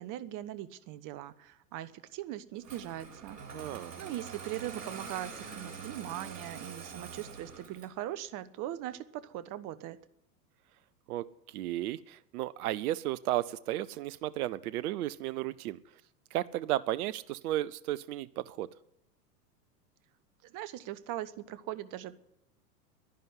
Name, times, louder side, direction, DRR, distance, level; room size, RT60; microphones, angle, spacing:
voice 1, 0.0-3.4 3.7-10.0 20.4-22.2, right 13 dB, 40° right, 15 dB, 1.1 m, -40 dB
Engine starting, 2.6-8.0, right 5 dB, 80° right, 3.9 m, -45 dB
voice 2, 3.5-3.9 11.1-11.3 11.5-15.8 16.3-18.7, right 14 dB, 65° right, 19 dB, 0.7 m, -34 dB
11.0 x 10.5 x 9.6 m, 0.81 s
hypercardioid pair, 100°, 48 cm